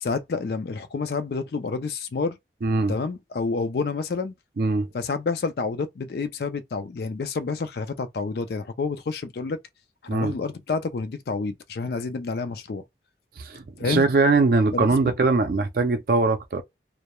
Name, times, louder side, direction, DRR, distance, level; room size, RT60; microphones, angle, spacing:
voice 1, 0.0-2.4 2.9-4.3 4.9-9.6 10.0-12.8 13.8-14.1 14.7-14.9, left 4 dB, 60° left, 0.4 m, -29 dB
voice 2, 2.6-2.9 4.6-4.9 10.1-10.3 13.4-16.6, right 3 dB, 55° right, 0.4 m, -21 dB
2.2 x 2.0 x 2.9 m
head